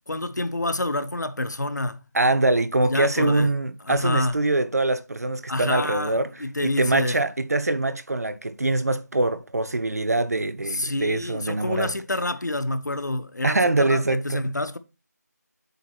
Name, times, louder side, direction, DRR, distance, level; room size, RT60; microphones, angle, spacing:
voice 1, 0.1-2.0 2.8-3.5 3.9-4.4 5.5-7.2 10.7-14.8, left 2 dB, 80° left, 0.9 m, -28 dB
voice 2, 2.1-11.9 13.4-14.5, right 2 dB, 60° right, 0.8 m, -23 dB
8.1 x 6.2 x 2.8 m
figure-of-eight pair, 170°, 10 cm